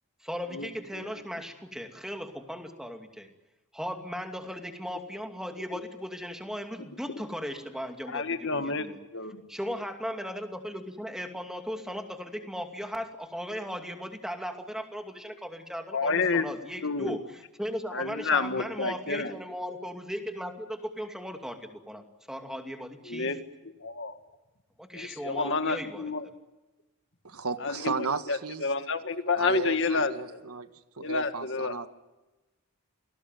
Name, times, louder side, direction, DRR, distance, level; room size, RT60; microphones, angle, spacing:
voice 1, 0.2-3.3 3.7-9.0 9.5-23.3 24.8-26.1, equal, ahead, 5 dB, 2.6 m, -37 dB
voice 2, 8.1-8.9 9.1-9.4 15.9-16.5 16.8-17.2 17.9-19.3 23.1-23.4 23.8-24.2 24.9-26.3 27.6-30.4 31.0-31.7, left 4 dB, 55° left, 9 dB, 1.9 m, -29 dB
voice 3, 27.2-28.6 29.4-30.7 31.0-31.9, right 4 dB, 85° right, 11 dB, 1.5 m, -34 dB
29.0 x 19.5 x 9.3 m, 1.1 s
head